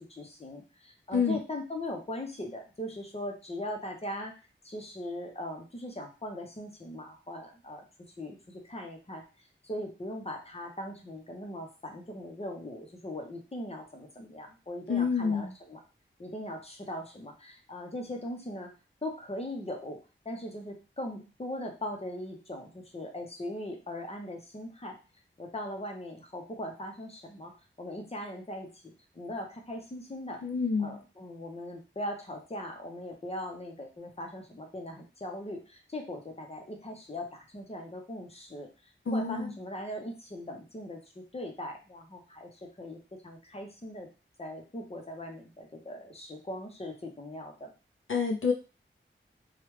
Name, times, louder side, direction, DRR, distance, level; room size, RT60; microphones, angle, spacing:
voice 1, 0.0-4.3 4.6-7.8 8.2-9.2 9.6-15.8 16.2-18.7 19.0-20.0 20.2-25.0 25.4-27.5 27.8-28.8 29.1-30.4 30.8-38.7 39.1-44.1 44.4-47.7, left 1 dB, 30° left, 2 dB, 0.8 m, -40 dB
voice 2, 14.9-15.5 30.4-31.0 39.1-39.5 48.1-48.5, left 5 dB, 75° left, 1 dB, 0.5 m, -28 dB
3.2 x 2.3 x 3.1 m, 0.31 s
wide cardioid pair, 75°, 21 cm